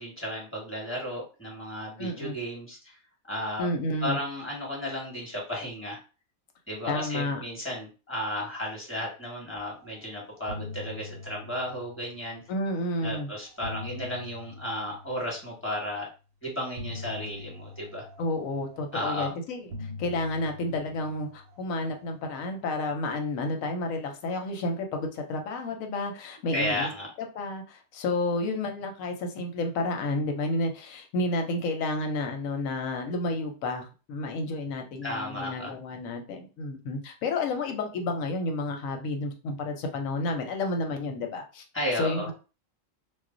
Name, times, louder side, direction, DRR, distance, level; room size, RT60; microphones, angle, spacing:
voice 1, 0.0-3.0 3.3-3.7 4.0-6.0 6.7-12.4 13.0-16.1 16.4-18.1 18.9-19.3 26.5-27.1 35.0-35.7 41.7-42.3, equal, 10° left, -4 dB, 1.1 m, -33 dB
voice 2, 2.0-2.3 3.6-4.2 6.9-7.4 12.5-13.3 18.2-26.9 27.3-41.6 42.0-42.3, left 2 dB, 90° left, 4 dB, 1.0 m, -31 dB
sound 1, 9.8-10.1 10.3-12.6 13.3-15.8 16.8-19.2 19.7-22.3, left 2 dB, 60° right, 0.7 m, -43 dB
2.4 x 2.0 x 3.7 m, 0.32 s
omnidirectional pair, 1.4 m